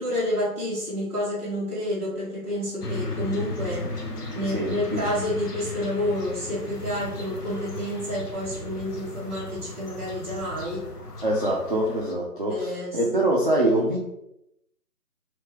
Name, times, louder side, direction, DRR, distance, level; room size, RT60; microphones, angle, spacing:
voice 1, 0.0-4.0 4.3-10.9 12.5-13.3, left 1 dB, 10° right, -14 dB, 0.7 m, -29 dB
sound 1, 2.8-12.1, left 2 dB, 85° left, 0.9 m, -35 dB
voice 2, 4.5-5.1 11.2-14.0, right 1 dB, 40° right, -3 dB, 0.4 m, -24 dB
3.2 x 3.1 x 3.2 m, 0.85 s
figure-of-eight pair, 155°, 45 cm